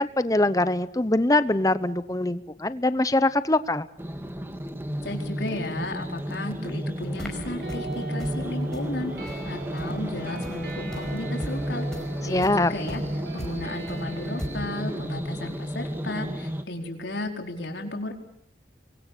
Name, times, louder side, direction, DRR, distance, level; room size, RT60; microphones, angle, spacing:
voice 1, 0.0-3.9 12.3-12.7, left 2 dB, 20° left, 14 dB, 0.9 m, -23 dB
sound 1, 4.0-16.6, equal, 15° right, 1.6 m, -32 dB
voice 2, 5.0-11.9 12.2-18.1, left 2 dB, 75° left, 3 dB, 4.6 m, -34 dB
sound 2, 6.9-14.5, equal, 5° left, 5.2 m, -41 dB
sound 3, 7.2-15.1, right 3 dB, 60° right, 4.4 m, -41 dB
27.5 x 23.5 x 7.0 m, 0.69 s
head